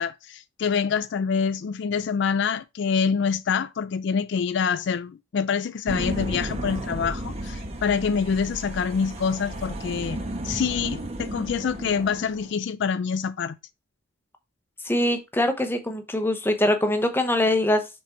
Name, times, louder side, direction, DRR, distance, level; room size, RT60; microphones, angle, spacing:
voice 1, 0.0-10.2 10.4-13.6, left 6 dB, 60° left, 0.4 m, -26 dB
sound 1, 5.9-12.5, right 1 dB, 30° right, 1.1 m, -33 dB
voice 2, 14.8-17.9, left 1 dB, 10° left, 0.9 m, -23 dB
5.9 x 4.3 x 4.5 m
head